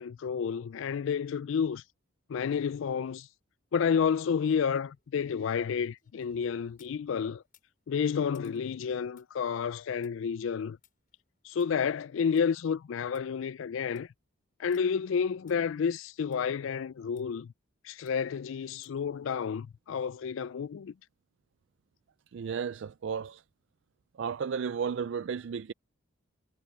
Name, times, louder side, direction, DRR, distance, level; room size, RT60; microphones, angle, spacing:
voice 1, 0.0-1.8 2.3-3.3 3.7-7.4 7.9-10.8 11.4-14.1 14.6-17.5 17.8-20.9, left 6 dB, 65° left, 0.3 m, -30 dB
sound 1, 4.5-7.0 7.4-12.5 12.8-12.9 13.1-13.2 13.7-14.1 14.7-14.8 15.5-15.6 16.3-16.4 17.2-17.3 18.1-18.4 18.8-19.1 19.5-19.6, left 9 dB, 40° left, 6.4 m, -68 dB
voice 2, 22.3-23.4 24.2-25.7, right 6 dB, 60° right, 0.3 m, -33 dB
head